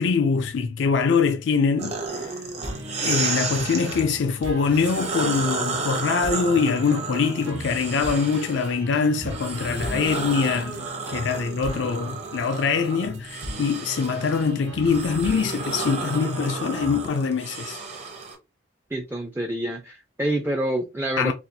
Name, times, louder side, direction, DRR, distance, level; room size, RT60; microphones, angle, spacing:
voice 1, 0.0-2.4 3.0-17.8 21.2-21.3, left 5 dB, 65° left, 0.4 m, -24 dB
sound 1, 1.8-4.0 4.6-8.7 9.2-18.3, right 4 dB, 35° right, 0.8 m, -32 dB
sound 2, 2.6-17.0, equal, 70° right, 0.8 m, -38 dB
voice 2, 18.9-21.3, right 1 dB, 10° right, 0.4 m, -27 dB
4.1 x 2.3 x 2.6 m
head